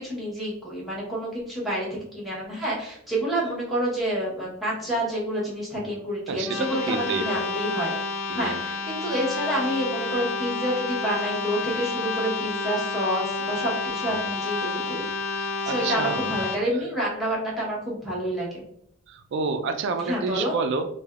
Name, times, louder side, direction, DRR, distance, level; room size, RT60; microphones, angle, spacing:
voice 1, 0.0-7.9 8.3-15.0 15.6-18.6 20.0-20.5, right 1 dB, ahead, -7 dB, 0.9 m, -28 dB
voice 2, 6.3-7.5 8.3-8.6 14.1-14.3 15.3-16.3 19.1-20.9, right 4 dB, 60° right, 8 dB, 0.3 m, -29 dB
sound 1, 6.4-16.6, left 4 dB, 85° left, 0.5 m, -30 dB
3.3 x 2.2 x 2.3 m, 0.69 s
head